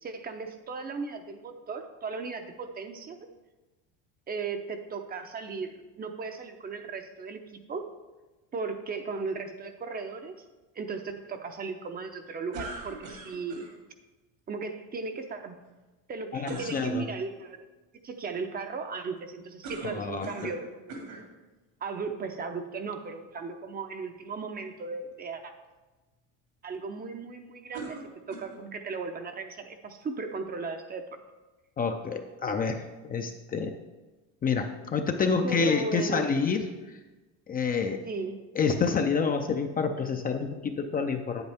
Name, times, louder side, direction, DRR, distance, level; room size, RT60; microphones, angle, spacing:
voice 1, 0.0-3.2 4.3-7.9 8.5-10.4 10.7-13.7 14.5-15.6 16.1-17.7 18.0-20.9 21.8-25.5 26.6-31.1 35.4-36.4 38.0-38.4, right 4 dB, 25° right, 7 dB, 0.7 m, -36 dB
sound 1, 12.5-13.7 16.4-16.9 19.6-20.6 20.9-21.3 22.1-22.2 27.7-28.7, right 2 dB, 80° right, 2.7 m, -41 dB
voice 2, 16.3-17.1 19.9-20.6 31.8-33.8 34.4-37.0 37.5-38.0 38.5-41.4, left 5 dB, 25° left, 5 dB, 0.5 m, -28 dB
8.7 x 8.0 x 3.5 m, 1.2 s
cardioid pair, 125°, 35 cm